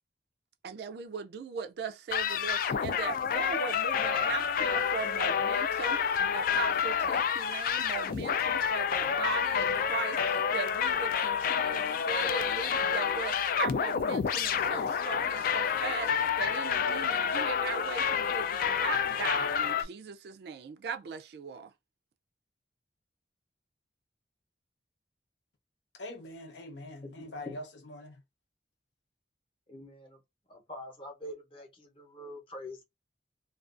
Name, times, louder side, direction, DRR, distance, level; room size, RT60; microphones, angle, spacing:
voice 1, 0.6-21.7, right 6 dB, 65° right, 0.3 m, -39 dB
sound 1, 2.1-19.8, left 7 dB, 55° left, 0.3 m, -29 dB
voice 2, 26.0-28.1, left 1 dB, 85° left, 0.7 m, -43 dB
voice 3, 27.0-27.5 29.7-30.2 30.5-32.8, left 1 dB, 30° left, 0.8 m, -45 dB
2.4 x 2.3 x 2.4 m
head